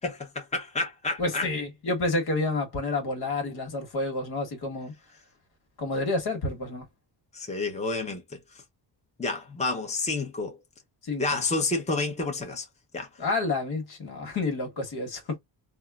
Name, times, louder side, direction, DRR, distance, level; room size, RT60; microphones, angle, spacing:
voice 1, 0.0-1.5 7.3-8.2 9.2-10.6 11.2-12.7 12.9-13.1, left 3 dB, 15° left, 0.8 m, -29 dB
voice 2, 1.2-4.9 5.8-6.8 11.0-11.2 13.2-15.4, left 2 dB, 60° left, 1.3 m, -29 dB
3.6 x 2.0 x 2.3 m
cardioid pair, 95°, 42 cm